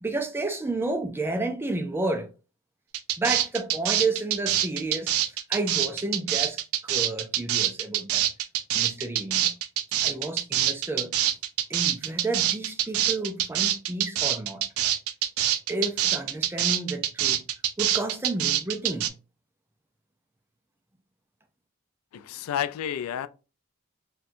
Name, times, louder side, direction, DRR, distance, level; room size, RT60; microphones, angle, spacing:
voice 1, 0.0-2.3 3.2-8.3 8.7-9.5 10.0-11.2 11.7-14.7 15.7-17.4 17.8-19.1, right 2 dB, 10° right, 0.3 m, -31 dB
sound 1, 2.9-19.1, right 11 dB, 80° right, 0.4 m, -25 dB
voice 2, 22.1-23.3, left 9 dB, 85° left, 0.3 m, -30 dB
4.0 x 2.2 x 2.5 m
head